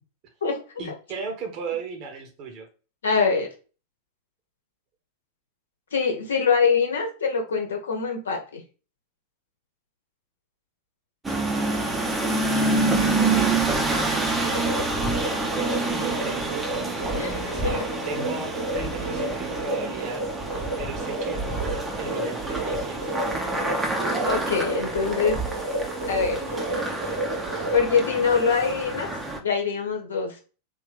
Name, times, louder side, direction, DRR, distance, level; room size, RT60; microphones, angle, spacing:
voice 1, 0.8-2.7 13.0-14.9 15.5-16.5 17.4-20.2 20.8-21.4 22.0-23.0 24.7-24.9 26.5-26.8, right 5 dB, 40° right, 4 dB, 1.1 m, -36 dB
voice 2, 3.0-3.5 5.9-8.6 17.1-17.8 24.2-25.4 26.1-26.4 27.7-29.1 29.4-30.4, left 5 dB, 65° left, 2 dB, 1.0 m, -24 dB
sound 1, 11.2-29.4, right 2 dB, 15° right, 0.8 m, -27 dB
sound 2, 14.5-27.8, right 1 dB, 70° right, 0.9 m, -32 dB
3.7 x 2.8 x 3.2 m, 0.35 s
figure-of-eight pair, 90°, 0 cm